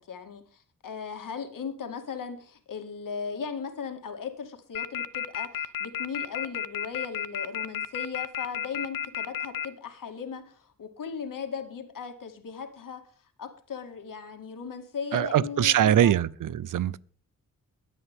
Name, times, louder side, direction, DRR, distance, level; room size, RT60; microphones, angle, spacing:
voice 1, 0.1-13.0 13.4-16.1, left 6 dB, 70° left, 2.2 m, -37 dB
sound 1, 4.7-9.6, left 9 dB, 85° left, 0.8 m, -31 dB
voice 2, 15.1-17.0, right 10 dB, 70° right, 0.6 m, -23 dB
23.0 x 8.4 x 3.6 m
cardioid pair, 75°, 34 cm